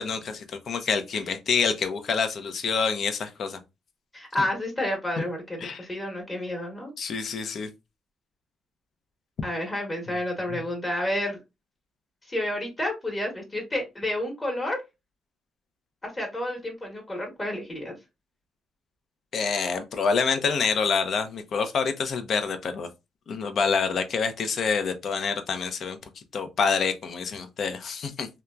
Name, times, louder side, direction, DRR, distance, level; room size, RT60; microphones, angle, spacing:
voice 1, 0.0-3.6 5.6-5.9 7.0-7.7 10.5-10.6 19.3-22.9 23.3-26.0 26.3-28.3, left 5 dB, 60° left, 0.5 m, -27 dB
voice 2, 4.1-6.9 9.4-11.4 12.3-14.8 16.0-18.0, left 1 dB, 25° left, 1.0 m, -30 dB
2.8 x 2.2 x 2.3 m
cardioid pair, 90°, 0 cm